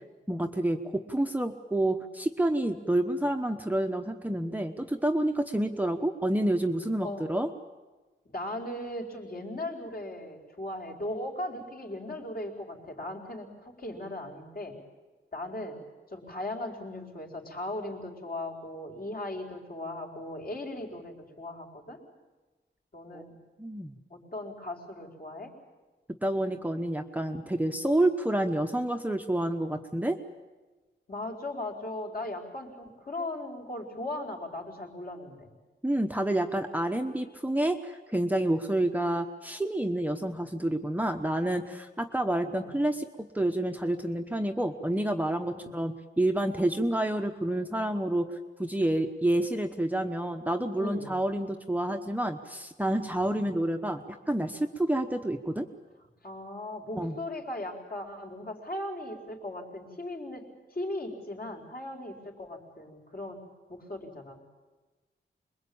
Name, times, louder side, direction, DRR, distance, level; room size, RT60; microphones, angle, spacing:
voice 1, 0.3-7.5 23.1-23.2 23.6-24.0 26.2-30.2 35.8-55.7 57.0-57.1, right 1 dB, 10° right, 4 dB, 1.0 m, -29 dB
voice 2, 8.2-14.8 15.3-15.8 16.1-22.0 22.9-23.3 24.1-25.5 31.1-35.5 42.5-42.7 45.5-45.7 50.8-51.1 53.2-53.4 56.2-63.4 63.7-64.4, left 1 dB, 50° left, 1 dB, 4.7 m, -38 dB
26.0 x 22.0 x 8.7 m, 1.2 s
wide cardioid pair, 150°, 20 cm